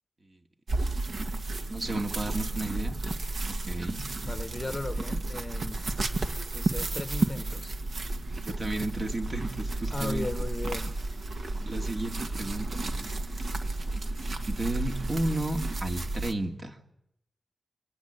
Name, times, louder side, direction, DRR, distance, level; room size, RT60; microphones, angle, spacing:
sound 1, 0.7-16.3, right 2 dB, 55° right, 1.8 m, -32 dB
voice 1, 1.7-3.0 3.5-4.1 8.4-10.3 11.7-13.8 14.5-16.8, right 2 dB, 40° right, 4 dB, 2.7 m, -33 dB
voice 2, 4.2-5.8 6.5-7.7 9.9-11.0, left 2 dB, 20° left, 10 dB, 1.0 m, -36 dB
26.0 x 22.0 x 8.4 m, 0.80 s
wide cardioid pair, 140°, 0 cm